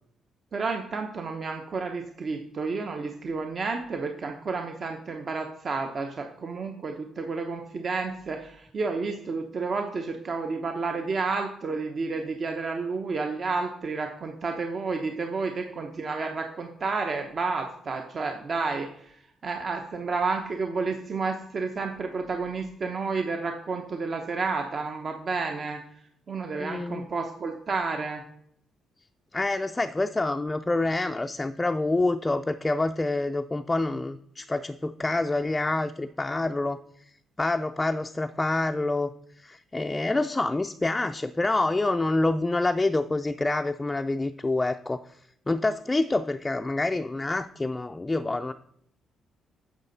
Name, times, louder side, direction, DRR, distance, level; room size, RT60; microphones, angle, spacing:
voice 1, 0.5-19.2 19.4-25.8 26.3-28.2, right 4 dB, 45° right, 4 dB, 0.9 m, -31 dB
voice 2, 26.6-27.1 29.3-36.8 37.4-45.2 45.5-48.5, left 2 dB, 15° left, 7 dB, 0.4 m, -27 dB
9.7 x 6.7 x 4.0 m, 0.70 s
cardioid pair, 90°, 0 cm